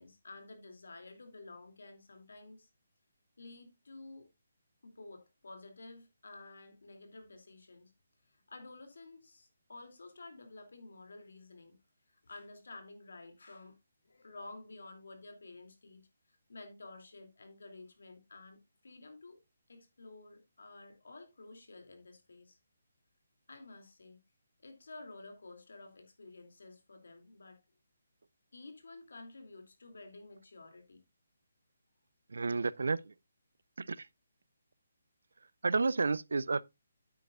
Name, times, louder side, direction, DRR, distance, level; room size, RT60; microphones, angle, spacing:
voice 1, 0.0-2.7 3.4-4.3 4.8-7.9 8.2-11.8 12.1-13.8 14.0-16.0 16.3-19.4 19.7-22.6 23.5-24.2 24.6-27.6 28.5-31.0, left 2 dB, 85° left, 2.8 m, -52 dB
voice 2, 32.3-33.1 33.8-34.1 35.6-36.6, right 4 dB, 85° right, 0.4 m, -31 dB
9.0 x 8.8 x 2.5 m
hypercardioid pair, 170°, 0 cm